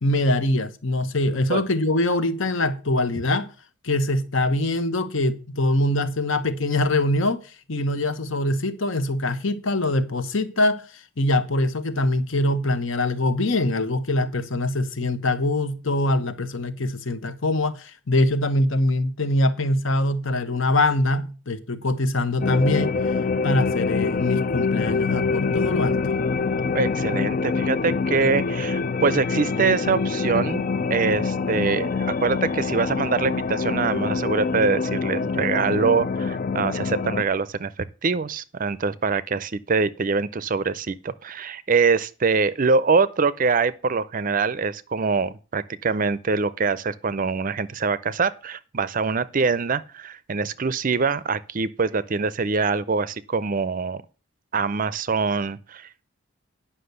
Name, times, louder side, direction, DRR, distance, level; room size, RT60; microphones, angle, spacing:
voice 1, 0.0-3.5 3.8-7.4 7.7-22.9 23.4-26.0, left 2 dB, 65° left, 1.1 m, -23 dB
sound 1, 22.4-37.2, left 4 dB, 40° left, 0.4 m, -25 dB
voice 2, 26.7-30.6 30.9-54.0 54.5-56.0, right 4 dB, 40° right, 0.5 m, -24 dB
9.9 x 5.8 x 6.7 m
head